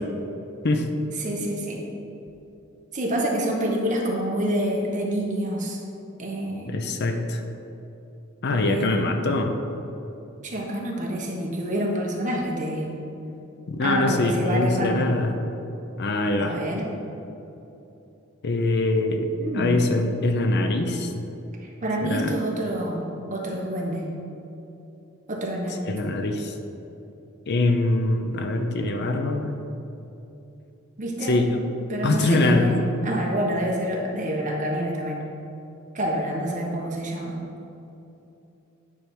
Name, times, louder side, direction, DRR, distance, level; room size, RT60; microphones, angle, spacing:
voice 1, 1.2-1.8 2.9-5.8 6.2-6.8 8.5-9.0 10.4-12.9 13.8-15.1 16.4-16.9 19.4-19.8 21.6-24.1 25.3-25.9 31.0-31.4 31.9-35.2 35.9-37.4, right 1 dB, 40° right, -1 dB, 1.2 m, -27 dB
voice 2, 6.7-7.4 8.4-9.5 13.7-15.3 16.0-16.6 18.4-21.1 22.0-22.3 25.9-26.5 27.5-29.6 31.2-31.6 32.0-32.7, left 2 dB, 55° left, 5 dB, 0.6 m, -23 dB
9.7 x 3.5 x 6.1 m, 2.9 s
head